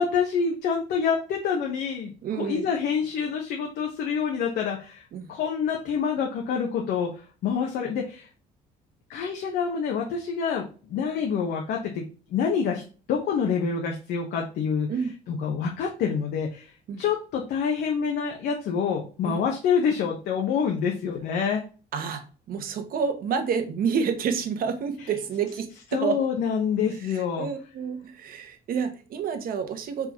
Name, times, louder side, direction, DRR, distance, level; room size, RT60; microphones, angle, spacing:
voice 1, 0.0-5.0 5.3-8.3 9.1-12.0 12.3-12.8 13.1-14.9 15.3-21.6 25.9-27.5, left 6 dB, 70° left, 0 dB, 0.9 m, -27 dB
voice 2, 2.2-2.7 5.1-5.3 14.9-15.1 16.9-17.0 19.2-19.4 21.9-22.2 22.5-26.2 27.0-30.1, right 6 dB, 60° right, 6 dB, 1.1 m, -29 dB
4.7 x 3.9 x 2.9 m, 0.36 s
cardioid pair, 110°, 17 cm